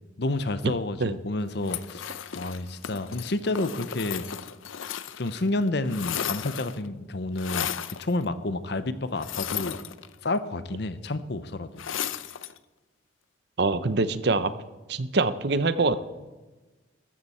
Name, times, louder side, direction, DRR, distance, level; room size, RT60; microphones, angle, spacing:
voice 1, 0.2-2.1 2.3-4.2 5.2-7.7 8.0-9.8 10.2-11.8, left 2 dB, 55° left, 13 dB, 0.8 m, -29 dB
Glass-Plate Crunching, 1.6-5.4 5.7-6.9 7.4-8.0 9.2-10.4 11.8-12.6, left 9 dB, 85° left, 0.6 m, -34 dB
voice 2, 13.6-14.5 14.9-16.0, right 3 dB, 55° right, 13 dB, 0.7 m, -24 dB
13.5 x 13.5 x 4.3 m, 1.2 s
head